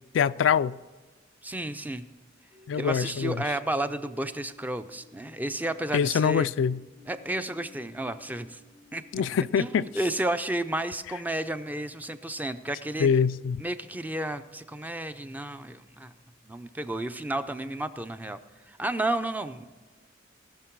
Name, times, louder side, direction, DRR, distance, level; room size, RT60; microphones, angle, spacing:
voice 1, 0.1-0.8 2.7-3.3 5.9-6.8 9.1-9.9 13.0-13.6, left 7 dB, 80° left, 0.3 m, -24 dB
voice 2, 1.4-2.1 2.7-6.5 7.1-8.6 8.9-9.0 9.6-13.1 13.6-16.1 16.4-18.4 18.7-19.6, right 1 dB, 10° right, 0.4 m, -32 dB
sound 1, 2.5-10.1, left 2 dB, 35° right, 1.9 m, -54 dB
19.0 x 6.5 x 4.6 m
head